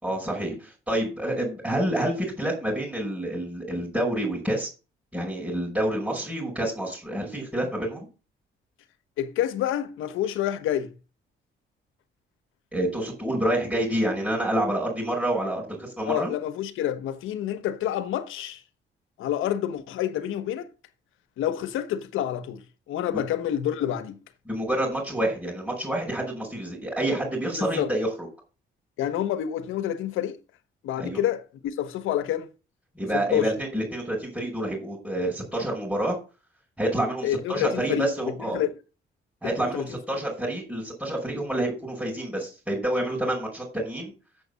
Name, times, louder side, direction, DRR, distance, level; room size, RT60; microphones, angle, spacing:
voice 1, 0.0-4.7 5.1-8.1 12.7-16.3 24.5-28.3 31.0-31.2 33.0-36.2 36.8-38.6 39.4-44.1, right 1 dB, 5° right, 5.6 m, -28 dB
voice 2, 9.2-10.9 16.1-18.6 19.2-20.7 21.4-24.2 27.6-27.9 29.0-30.4 30.8-32.5 33.1-33.5 37.2-38.1 38.5-38.7 39.6-39.9, left 11 dB, 90° left, 1.3 m, -28 dB
7.9 x 7.1 x 6.9 m
cardioid pair, 90°, 20 cm